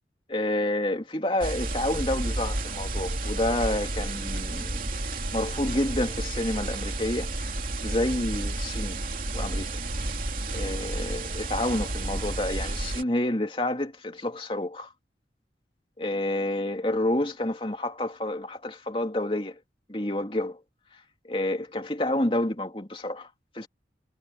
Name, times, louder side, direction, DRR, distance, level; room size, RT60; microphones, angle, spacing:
voice 1, 0.3-4.8 5.3-7.6 7.8-9.0 9.3-9.8 10.5-14.9 16.0-19.6 19.9-20.6 20.9-23.3 23.5-23.7, left 1 dB, 30° left, 2.7 m, -29 dB
sound 1, 1.4-13.0, right 2 dB, 50° right, 3.1 m, -31 dB
head